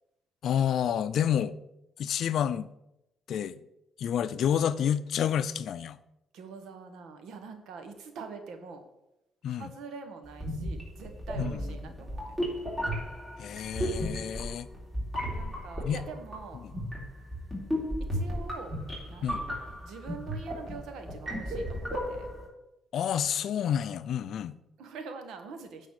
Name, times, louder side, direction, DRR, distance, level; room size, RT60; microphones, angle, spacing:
voice 1, 0.4-1.5 2.0-2.7 3.3-3.6 4.0-6.0 9.4-9.7 11.4-11.5 13.4-14.7 15.8-16.0 16.6-16.7 19.2-19.4 22.9-24.5, left 9 dB, 70° left, 0.4 m, -29 dB
voice 2, 6.3-8.9 9.5-12.4 15.3-16.6 18.1-18.7 19.1-22.3 24.3-25.9, right 4 dB, 80° right, 1.4 m, -44 dB
sound 1, 10.3-22.5, equal, 15° right, 3.5 m, -34 dB
9.6 x 4.1 x 6.9 m
cardioid pair, 90°, 0 cm